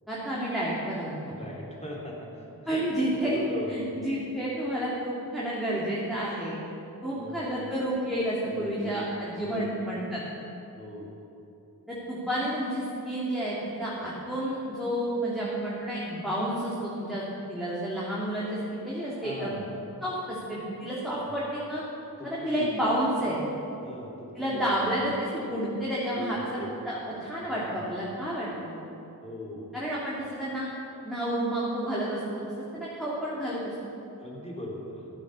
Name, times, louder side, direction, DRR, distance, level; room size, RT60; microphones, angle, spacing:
voice 1, 0.1-1.3 2.7-3.4 3.7-6.5 7.0-10.2 11.9-17.2 17.5-19.5 20.0-21.8 22.2-23.4 24.3-28.7 29.7-30.7 31.0-32.4 32.7-33.7, right 1 dB, ahead, -8 dB, 3.0 m, -30 dB
voice 2, 1.4-2.5 2.7-2.8 3.2-3.9 7.1-7.4 8.5-8.9 9.4-9.7 10.7-11.2 19.2-19.5 21.1-21.4 22.2-22.6 23.8-24.6 25.1-25.2 26.1-26.7 27.7-27.8 29.2-29.7 34.2-35.0, equal, 15° left, -4 dB, 3.7 m, -39 dB
13.5 x 8.2 x 7.0 m, 2.8 s
wide cardioid pair, 40°, 38 cm